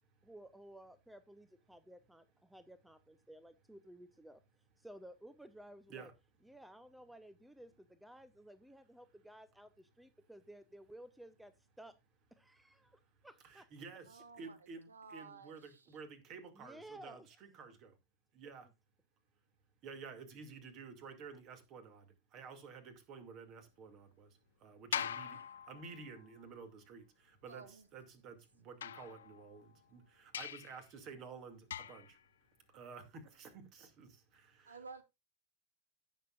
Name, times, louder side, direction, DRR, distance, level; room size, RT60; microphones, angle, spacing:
voice 1, 0.2-4.4 4.8-6.1 6.4-12.0 12.3-13.7 16.6-17.3, right 1 dB, 5° right, 0.7 m, -55 dB
voice 2, 13.4-17.9 18.3-18.7 19.8-24.3 24.6-25.4 25.7-32.2 32.7-34.8, right 5 dB, 35° right, 2.3 m, -52 dB
voice 3, 14.1-14.6 14.9-16.0 24.9-25.1 27.5-27.9 34.6-35.0, right 4 dB, 75° right, 1.0 m, -53 dB
sound 1, 24.9-26.3 28.8-29.7 30.3-30.8 31.7-32.2, left 9 dB, 65° left, 0.5 m, -42 dB
17.0 x 6.8 x 2.4 m
figure-of-eight pair, 90°, 0 cm